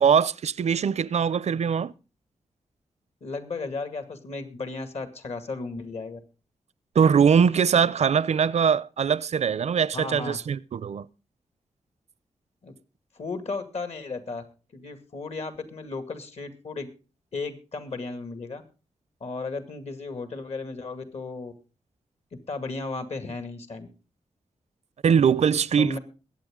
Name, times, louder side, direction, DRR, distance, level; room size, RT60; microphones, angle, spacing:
voice 1, 0.0-1.9 7.0-11.1 25.0-26.0, right 7 dB, 65° right, 0.5 m, -22 dB
voice 2, 3.2-6.2 9.9-10.4 12.6-12.7 13.2-14.4 14.7-16.9 17.3-18.6 19.2-21.5 22.5-23.9 25.8-26.0, left 3 dB, 60° left, 2.2 m, -34 dB
21.5 x 8.7 x 3.7 m
wide cardioid pair, 85°, 12 cm